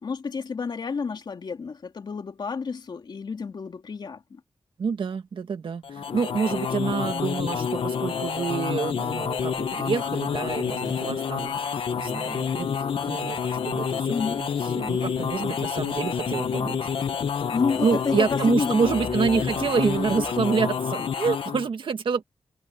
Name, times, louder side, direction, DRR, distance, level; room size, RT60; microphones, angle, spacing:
voice 1, 0.0-4.4 14.1-14.4 17.4-18.8, left 5 dB, 55° left, 3.2 m, -30 dB
voice 2, 4.8-12.7 13.0-14.5 14.8-16.9 17.8-22.2, right 5 dB, 65° right, 1.9 m, -27 dB
sound 1, 5.8-21.7, left 7 dB, 70° left, 1.5 m, -28 dB
sound 2, 9.4-20.3, right 4 dB, 40° right, 4.1 m, -47 dB
wide cardioid pair, 140°, 9 cm